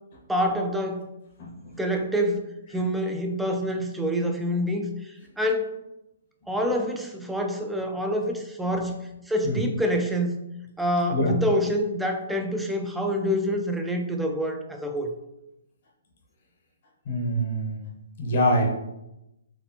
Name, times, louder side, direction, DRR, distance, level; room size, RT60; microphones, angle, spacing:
voice 1, 0.3-1.1 1.8-5.8 6.5-8.9 9.3-10.4 10.8-15.1, equal, 5° right, 3 dB, 0.5 m, -26 dB
voice 2, 1.4-1.7 2.7-2.8 8.7-8.8 9.4-9.6 11.1-11.3 17.1-17.9 18.2-18.7, equal, 50° left, -1 dB, 1.0 m, -25 dB
4.3 x 3.2 x 2.8 m, 0.91 s
figure-of-eight pair, 130°, 0 cm